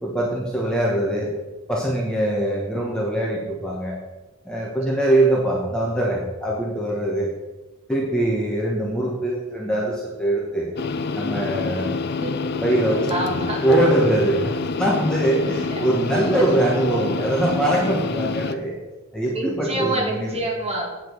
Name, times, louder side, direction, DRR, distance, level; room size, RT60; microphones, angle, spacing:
voice 1, 0.0-1.3 1.7-4.0 4.4-7.3 7.9-10.7 11.1-11.9 12.6-13.1 13.6-18.7 19.1-20.4, right 1 dB, 5° left, -4 dB, 1.2 m, -22 dB
sound 1, 10.8-18.5, left 4 dB, 50° left, 0.5 m, -27 dB
voice 2, 12.2-12.6 13.1-13.6 15.5-15.7 16.8-17.0 19.3-20.9, right 1 dB, 30° right, -2 dB, 2.3 m, -27 dB
8.5 x 7.6 x 4.6 m, 1.1 s
head